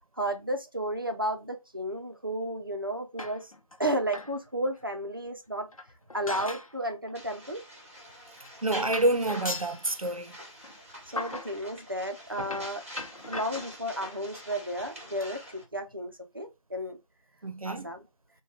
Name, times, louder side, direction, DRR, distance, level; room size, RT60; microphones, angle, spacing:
voice 1, 0.1-3.5 3.8-5.7 6.1-7.6 11.1-12.8 13.3-17.0 17.6-18.0, right 1 dB, 40° right, 0.6 m, -33 dB
sound 1, 3.2-3.8 4.1-4.4 4.7-4.8 5.7-6.8 7.1-7.3 8.1-8.2 8.4-8.6 8.9-10.1 10.6-10.8 11.2-11.6 12.3-14.1 14.7-14.9 15.2-15.3 15.6-15.7 15.9-16.0, left 2 dB, 75° left, 0.6 m, -39 dB
sound 2, 7.1-15.6, equal, 25° right, 1.0 m, -46 dB
voice 2, 8.6-10.3 17.4-17.9, right 2 dB, 80° right, 0.7 m, -28 dB
4.9 x 2.3 x 3.1 m
figure-of-eight pair, 170°, 18 cm